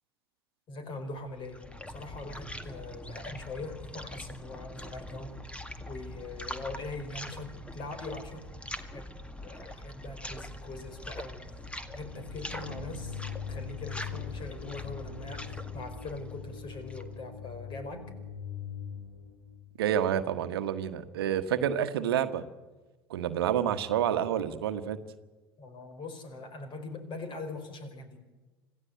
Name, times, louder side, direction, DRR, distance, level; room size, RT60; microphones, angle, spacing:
voice 1, 0.7-1.6 1.9-5.3 5.9-8.4 8.8-9.1 9.4-11.5 11.9-13.2 13.5-18.0 25.6-28.3, left 3 dB, 40° left, 9 dB, 4.8 m, -42 dB
sound 1, 1.1-17.2, left 1 dB, 10° left, 2.0 m, -43 dB
sound 2, 11.8-19.7, left 6 dB, 90° left, 6.3 m, -41 dB
voice 2, 19.8-22.4 23.1-25.0, right 9 dB, 70° right, 11 dB, 1.4 m, -28 dB
26.5 x 16.0 x 8.0 m, 1.2 s
figure-of-eight pair, 75°, 13 cm